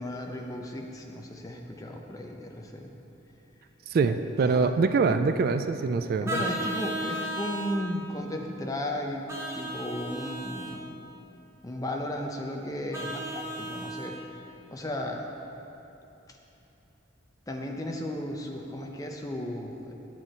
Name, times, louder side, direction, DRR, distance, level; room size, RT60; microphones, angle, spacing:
voice 1, 0.0-2.9 4.0-4.1 4.4-4.7 6.2-9.3 9.5-10.8 11.6-14.2 14.7-15.2 17.5-19.9, left 1 dB, 15° left, 1 dB, 0.7 m, -35 dB
voice 2, 3.9-6.3, right 4 dB, 50° right, 9 dB, 0.3 m, -24 dB
Vehicle horn car horn honking, 6.2-7.8 9.3-10.8 12.9-14.1, right 1 dB, 15° right, 1.0 m, -34 dB
9.7 x 9.4 x 4.4 m, 2.9 s
head